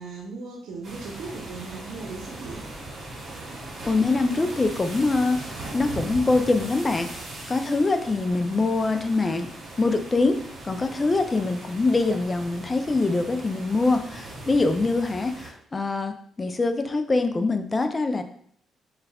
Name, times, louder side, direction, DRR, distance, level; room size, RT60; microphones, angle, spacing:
voice 1, 0.0-2.7, right 4 dB, 75° right, -2 dB, 0.8 m, -37 dB
sound 1, 0.8-15.5, right 2 dB, 55° right, 1.5 m, -39 dB
voice 2, 3.8-7.1 7.5-9.5 9.8-18.2, left 3 dB, 25° left, 7 dB, 0.4 m, -24 dB
6.7 x 2.4 x 2.3 m, 0.64 s
cardioid pair, 90°, 0 cm